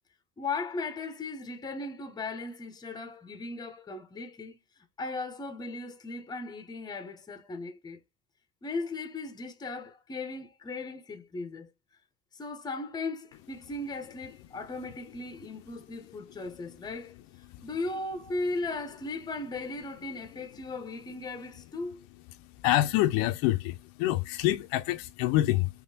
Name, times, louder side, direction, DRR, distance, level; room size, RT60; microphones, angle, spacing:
voice 1, 0.4-4.6 5.0-8.0 8.6-11.7 12.3-22.0, left 3 dB, 10° left, 0.6 m, -37 dB
voice 2, 22.6-25.7, left 15 dB, 60° left, 0.5 m, -26 dB
3.6 x 3.1 x 2.6 m
cardioid pair, 135°, 38 cm